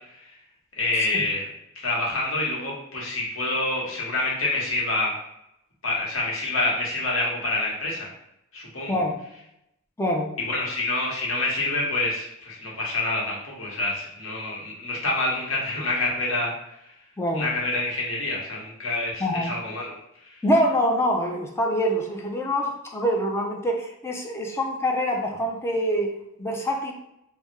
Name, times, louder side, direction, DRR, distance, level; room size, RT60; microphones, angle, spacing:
voice 1, 0.8-1.4 1.8-5.1 5.8-8.1 8.5-9.0 10.5-16.5 17.3-19.9 20.3-20.4, left 2 dB, 70° left, -4 dB, 1.1 m, -27 dB
voice 2, 10.0-10.3 17.2-17.5 19.2-19.5 20.4-26.9, equal, 10° left, 1 dB, 0.4 m, -25 dB
3.4 x 2.0 x 3.2 m, 0.82 s
head